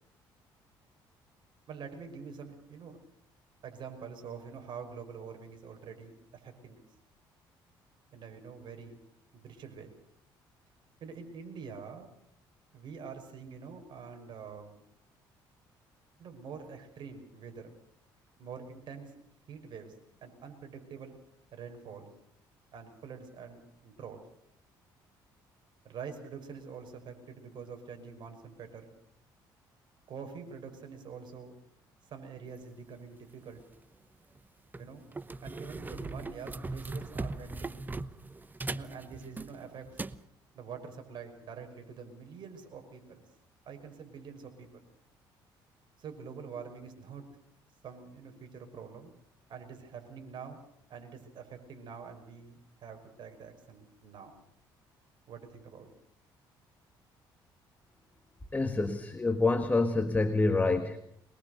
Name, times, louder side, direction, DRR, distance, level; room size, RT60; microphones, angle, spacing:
voice 1, 1.7-3.0 3.6-6.8 8.1-9.0 9.3-9.9 11.0-12.1 12.7-14.7 16.2-17.8 18.4-19.1 19.5-19.9 20.2-21.2 21.5-22.1 22.7-24.2 25.8-29.0 30.1-31.5 32.1-33.6 34.8-35.0 35.4-37.8 38.7-39.8 40.5-43.2 43.7-44.9 46.0-47.2 47.8-49.1 49.5-50.6 50.9-54.3 55.3-55.9, right 6 dB, 60° right, 5 dB, 5.9 m, -46 dB
sound 1, 33.6-33.8 34.4-34.5 34.7-40.2, right 3 dB, 20° right, 0.9 m, -39 dB
voice 2, 58.5-61.0, left 3 dB, 20° left, 8 dB, 1.7 m, -27 dB
24.0 x 21.5 x 6.7 m, 0.72 s
cardioid pair, 90°, 9 cm